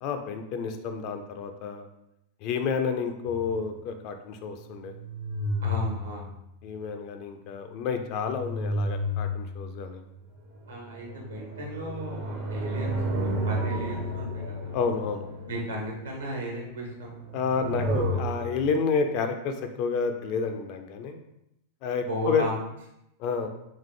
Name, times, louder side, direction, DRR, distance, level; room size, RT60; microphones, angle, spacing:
voice 1, 0.0-1.9 2.4-4.9 6.6-10.0 14.7-15.3 17.3-21.2 21.8-22.4 23.2-23.5, left 5 dB, 45° left, 6 dB, 0.4 m, -30 dB
sound 1, 3.3-3.6 4.7-6.3 7.7-10.0 10.7-15.8 17.0-18.8, equal, 35° right, 0.6 m, -32 dB
voice 2, 5.6-6.3 10.7-13.0 13.5-14.8 15.4-17.2 22.1-22.7, equal, 70° right, -1 dB, 1.1 m, -35 dB
sound 2, 10.3-17.5 17.9-18.2, equal, 65° left, 0.8 m, -48 dB
3.5 x 3.2 x 3.2 m, 0.82 s
figure-of-eight pair, 90°, 0 cm